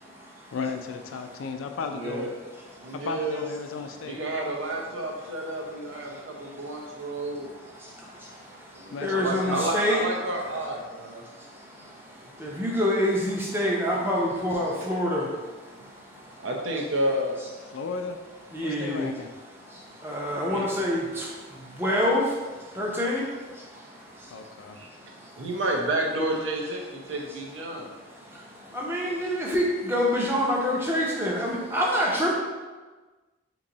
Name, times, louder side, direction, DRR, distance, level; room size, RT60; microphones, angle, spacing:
voice 1, 0.5-2.3 3.1-4.2 8.9-9.6 17.7-18.2 18.6-19.3 24.3-24.8, left 4 dB, 85° left, 6 dB, 0.3 m, -34 dB
voice 2, 1.9-2.3 2.8-3.4 4.0-7.5 8.7-11.2 16.4-17.4 20.5-20.6 24.8-24.9 25.4-27.9, right 1 dB, 85° right, 0 dB, 0.7 m, -30 dB
voice 3, 6.0-10.0 11.1-16.5 17.7-17.8 18.5-19.1 19.6-25.5 27.0-27.1 27.7-32.3, equal, 10° right, -3 dB, 0.5 m, -29 dB
3.0 x 2.6 x 3.8 m, 1.3 s
head